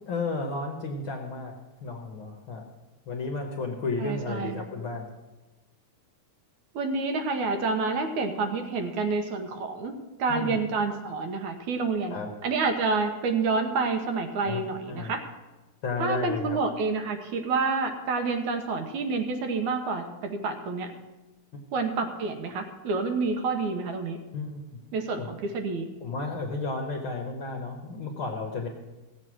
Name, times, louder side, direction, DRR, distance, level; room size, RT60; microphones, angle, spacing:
voice 1, 0.1-1.5 1.8-2.6 3.1-5.1 10.3-10.6 12.1-12.3 14.5-14.6 14.9-15.1 15.8-16.6 24.3-24.6 25.2-25.3 26.0-28.7, left 3 dB, 55° left, 2 dB, 1.5 m, -32 dB
voice 2, 4.0-4.7 6.7-9.9 10.2-15.2 16.0-20.9 21.7-24.2 24.9-25.9, right 4 dB, 75° right, 5 dB, 2.5 m, -28 dB
16.0 x 7.7 x 6.2 m, 1.1 s
omnidirectional pair, 3.6 m